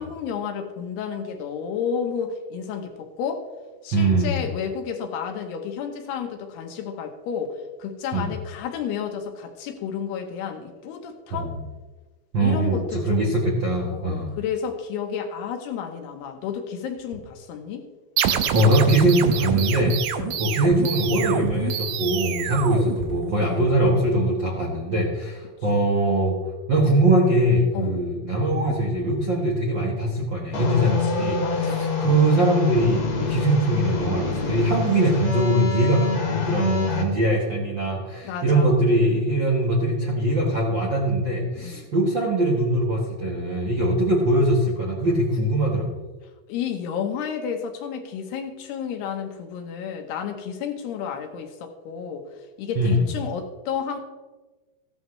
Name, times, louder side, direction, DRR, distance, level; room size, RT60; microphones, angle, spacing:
voice 1, 0.0-3.5 3.8-11.5 12.4-13.3 13.9-17.9 20.2-20.5 22.5-22.7 27.7-28.0 30.9-31.1 31.4-31.8 36.8-36.9 38.2-38.7 41.6-41.9 46.5-52.3 52.6-54.0, left 7 dB, 90° left, 4 dB, 3.2 m, -31 dB
voice 2, 3.9-4.5 8.1-8.3 11.3-11.7 12.3-14.3 18.5-20.0 20.4-26.4 26.7-46.0 52.7-53.1, right 1 dB, 60° right, -3 dB, 1.2 m, -22 dB
sound 1, 18.2-23.6, right 9 dB, 80° right, 2.0 m, -28 dB
sound 2, 30.5-37.0, left 4 dB, 50° left, 1.8 m, -26 dB
15.0 x 11.5 x 3.2 m, 1.3 s
omnidirectional pair, 4.6 m